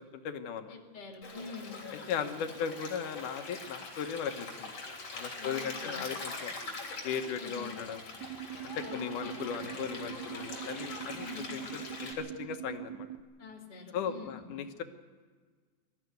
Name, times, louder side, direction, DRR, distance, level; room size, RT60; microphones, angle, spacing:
voice 1, 0.0-0.7 1.9-4.7 5.1-6.5 7.0-8.0 8.6-13.1 13.9-14.8, left 7 dB, 85° left, 7 dB, 2.7 m, -37 dB
voice 2, 0.7-1.9 5.4-6.0 7.3-7.8 8.8-9.3 11.1-11.6 13.4-14.5, left 4 dB, 15° left, 0 dB, 2.3 m, -46 dB
Stream, 1.2-12.1, left 3 dB, 50° left, 4.3 m, -43 dB
sound 1, 8.2-13.2, right 12 dB, 75° right, 1.9 m, -43 dB
21.5 x 14.0 x 9.3 m, 1.5 s
omnidirectional pair, 3.5 m